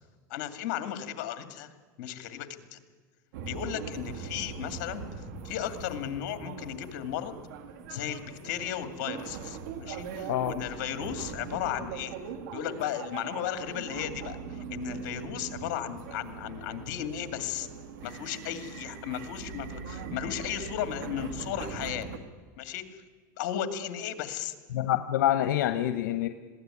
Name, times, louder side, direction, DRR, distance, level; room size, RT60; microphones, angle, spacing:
voice 1, 0.3-1.7 2.0-2.8 3.5-7.4 7.9-12.1 12.5-17.7 18.0-22.1 22.6-23.0 23.4-24.5, left 10 dB, 60° left, 9 dB, 2.3 m, -35 dB
sound 1, 3.3-22.2, right 6 dB, 75° right, 2.2 m, -41 dB
voice 2, 24.7-26.3, left 12 dB, 85° left, 9 dB, 1.0 m, -26 dB
21.0 x 16.0 x 9.8 m, 1.5 s
supercardioid pair, 140°, 10 cm